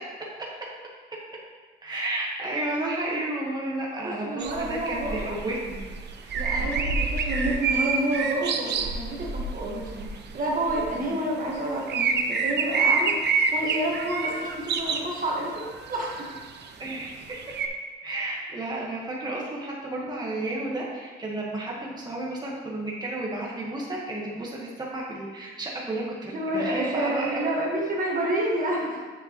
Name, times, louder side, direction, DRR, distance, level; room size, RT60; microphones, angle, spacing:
voice 1, 1.8-5.8 6.2-6.8 10.9-11.2 16.8-17.4 18.0-27.4, right 2 dB, 20° right, -4 dB, 1.5 m, -32 dB
voice 2, 4.0-5.3 6.3-16.4 26.3-29.0, right 1 dB, 45° right, -3 dB, 1.6 m, -29 dB
sound 1, 4.4-11.2 11.7-15.1 15.6-17.7, right 4 dB, 60° right, 0.7 m, -28 dB
7.2 x 6.6 x 3.1 m, 1.4 s
cardioid pair, 90°, 20 cm